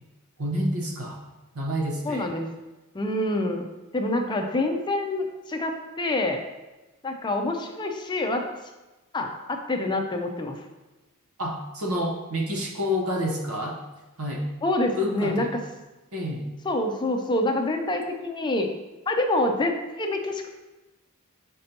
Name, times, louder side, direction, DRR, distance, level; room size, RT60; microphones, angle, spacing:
voice 1, 0.4-1.2 1.5-2.3 11.4-13.8 14.2-14.5 15.0-15.5 16.1-16.5, equal, 80° right, 0 dB, 1.0 m, -28 dB
voice 2, 2.1-2.5 2.9-3.7 3.9-6.4 7.0-8.5 9.1-10.6 14.6-15.5 16.6-18.7 19.1-20.5, left 1 dB, 20° left, 4 dB, 0.5 m, -26 dB
6.4 x 5.2 x 2.9 m, 1.1 s
head